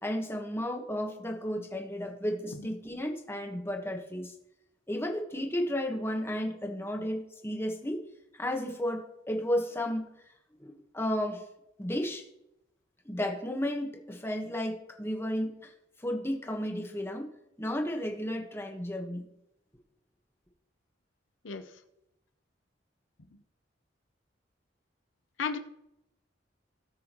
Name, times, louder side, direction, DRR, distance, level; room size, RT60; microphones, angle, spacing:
voice 1, 0.0-4.3 4.9-8.0 8.3-10.0 10.6-11.4 11.8-12.3 13.0-15.7 16.0-17.3 17.6-19.2, equal, 15° left, 2 dB, 1.3 m, -33 dB
voice 2, 2.6-2.7 21.4-21.7 25.4-25.6, left 5 dB, 90° left, 8 dB, 0.8 m, -34 dB
18.0 x 6.1 x 3.0 m, 0.84 s
head